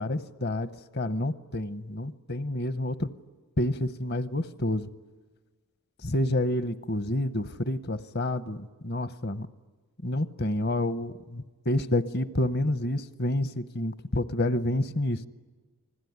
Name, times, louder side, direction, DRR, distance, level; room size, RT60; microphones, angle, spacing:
voice 1, 0.0-3.1 3.6-4.9 6.0-9.5 10.0-15.2, left 1 dB, 45° left, 13 dB, 0.9 m, -29 dB
29.0 x 21.0 x 9.6 m, 1.3 s
head